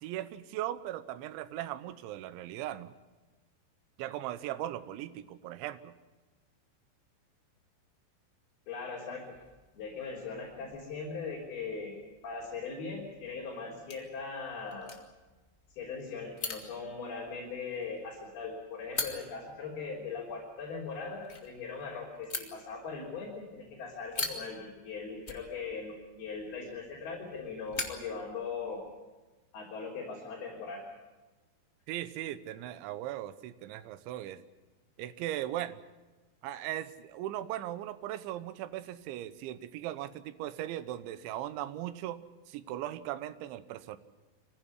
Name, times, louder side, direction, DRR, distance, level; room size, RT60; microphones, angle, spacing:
voice 1, 0.0-2.9 4.0-5.9 31.9-34.4 35.0-35.8 36.4-44.0, right 13 dB, 90° right, 13 dB, 3.3 m, -38 dB
voice 2, 8.7-9.4 9.8-11.9 12.2-14.9 15.8-28.9 29.5-30.8, left 4 dB, 60° left, -4 dB, 5.7 m, -40 dB
sound 1, 9.3-28.9, left 3 dB, 80° left, 0.6 m, -45 dB
24.0 x 15.5 x 9.7 m, 1.2 s
omnidirectional pair, 5.2 m